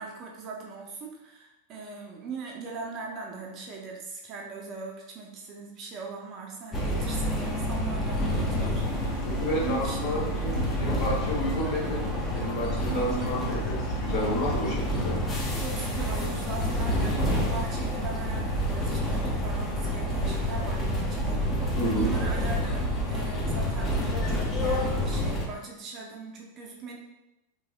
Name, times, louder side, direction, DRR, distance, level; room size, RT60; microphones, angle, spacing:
voice 1, 0.0-9.2 9.6-10.0 10.5-10.7 12.9-13.6 15.6-23.9 24.3-27.0, right 4 dB, 35° right, 0 dB, 0.5 m, -40 dB
sound 1, 6.7-25.5, equal, 20° left, 0.6 m, -28 dB
voice 2, 9.2-12.0 12.3-15.2 21.8-22.1, left 1 dB, 45° left, -3 dB, 0.9 m, -30 dB
2.9 x 2.7 x 2.3 m, 0.93 s
figure-of-eight pair, 90°, 0 cm